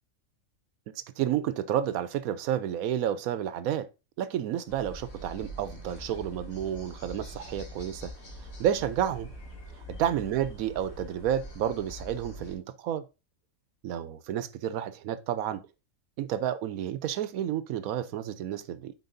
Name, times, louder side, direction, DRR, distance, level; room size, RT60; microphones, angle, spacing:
voice 1, 1.2-3.9 4.2-4.9 5.2-8.1 8.6-9.3 9.9-13.0 13.8-15.7 16.2-18.9, right 10 dB, 90° right, 1.1 m, -30 dB
sound 1, 4.7-12.5, equal, 80° left, 2.1 m, -44 dB
9.4 x 4.4 x 2.6 m
omnidirectional pair, 1.4 m